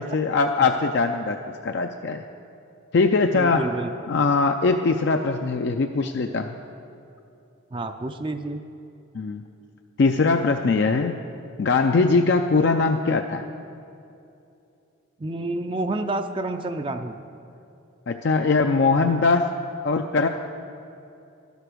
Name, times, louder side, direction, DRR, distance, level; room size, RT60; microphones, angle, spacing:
voice 1, 0.0-2.2 2.9-3.7 4.1-6.5 9.1-9.4 10.0-11.2 11.6-13.4 18.1-19.5 19.8-20.3, left 4 dB, 55° left, 5 dB, 0.4 m, -21 dB
voice 2, 3.3-3.9 7.7-8.6 15.2-17.2, right 2 dB, 25° right, 7 dB, 0.4 m, -29 dB
12.5 x 8.2 x 6.1 m, 2.7 s
head